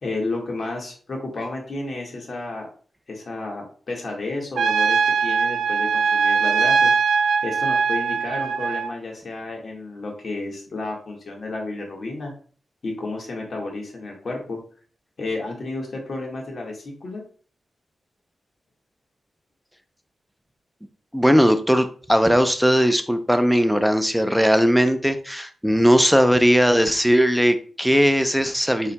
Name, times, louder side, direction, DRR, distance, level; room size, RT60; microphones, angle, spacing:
voice 1, 0.0-2.7 3.1-7.0 7.4-12.3 12.8-14.6 15.2-17.2, left 2 dB, 60° left, 0 dB, 1.6 m, -31 dB
Trumpet, 4.5-8.9, right 5 dB, 85° right, 0.3 m, -21 dB
voice 2, 21.1-28.9, equal, ahead, 9 dB, 0.6 m, -18 dB
4.9 x 4.3 x 2.2 m, 0.42 s
cardioid pair, 55°, 0 cm